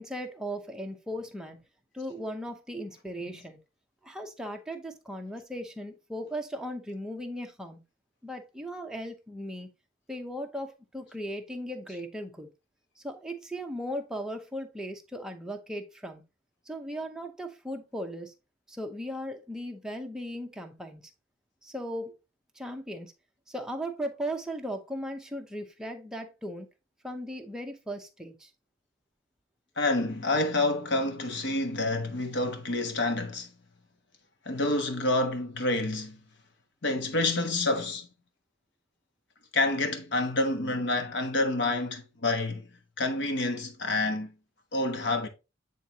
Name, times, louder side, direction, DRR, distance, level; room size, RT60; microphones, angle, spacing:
voice 1, 0.0-1.6 1.9-3.6 4.0-7.8 8.2-9.7 10.1-12.5 13.0-16.2 16.7-18.3 18.7-21.1 21.6-22.2 22.5-23.1 23.5-26.7 27.0-28.5, equal, 5° right, 0.8 m, -37 dB
voice 2, 29.8-33.5 34.4-36.2 36.8-38.1 39.5-42.7 43.0-44.3 44.7-45.3, left 2 dB, 60° left, 1.1 m, -28 dB
9.0 x 3.7 x 2.8 m
head